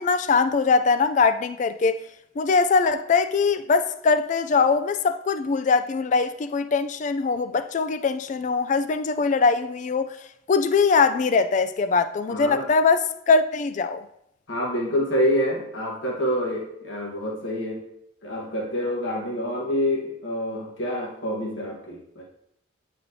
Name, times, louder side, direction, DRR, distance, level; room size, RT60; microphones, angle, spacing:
voice 1, 0.0-2.0 2.4-10.1 10.5-14.0, left 4 dB, 40° left, 0.3 m, -22 dB
voice 2, 12.3-12.7 14.5-17.8 18.2-22.2, equal, 80° left, 1.3 m, -27 dB
9.2 x 4.2 x 2.7 m
head